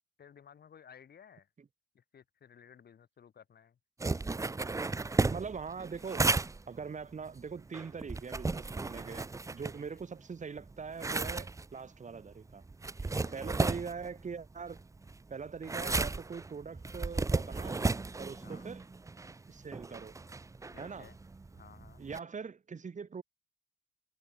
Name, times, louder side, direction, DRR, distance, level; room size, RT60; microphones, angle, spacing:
voice 1, 0.2-1.5 1.9-3.8 9.9-10.0 13.2-13.6 18.4-18.7 20.7-21.2 21.5-22.0, left 8 dB, 55° left, 6.3 m, -57 dB
sound 1, 4.0-10.2 10.6-22.2, right 3 dB, 15° right, 0.6 m, -35 dB
voice 2, 5.3-6.3 6.7-12.6 13.0-14.8 15.3-17.9 18.2-18.8 19.5-20.2 20.8-21.1 22.0-23.2, right 5 dB, 40° right, 3.5 m, -42 dB
cardioid pair, 90°, 20 cm